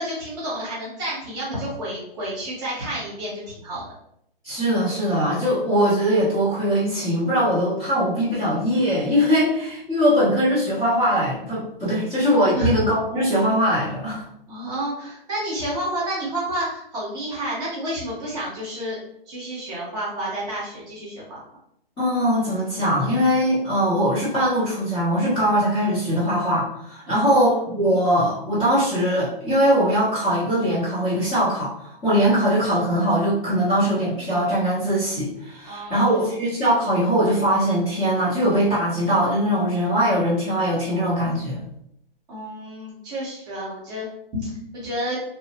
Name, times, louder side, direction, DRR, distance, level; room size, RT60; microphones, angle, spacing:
voice 1, 0.0-3.8 12.5-12.8 14.5-19.0 19.3-21.4 27.1-27.7 35.6-36.3 42.3-44.1 44.3-45.2, equal, 15° right, -8 dB, 1.0 m, -30 dB
voice 2, 4.4-14.2 22.0-27.5 27.7-41.6, equal, 15° left, -11 dB, 0.7 m, -21 dB
2.9 x 2.0 x 2.8 m, 0.73 s
hypercardioid pair, 155°, 30 cm